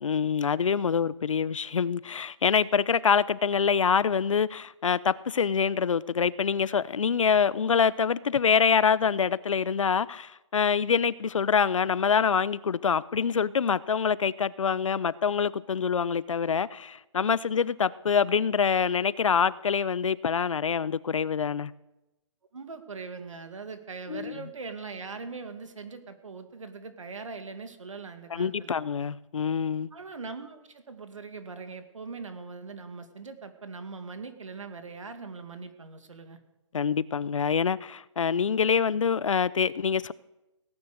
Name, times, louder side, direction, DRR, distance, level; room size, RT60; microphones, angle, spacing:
voice 1, 0.0-21.7 24.1-24.3 28.3-29.9 36.7-40.1, left 6 dB, 90° left, 0.6 m, -25 dB
voice 2, 22.5-28.8 29.9-36.4, right 4 dB, 90° right, 2.2 m, -41 dB
18.0 x 9.7 x 6.6 m
hypercardioid pair, 155°, 16 cm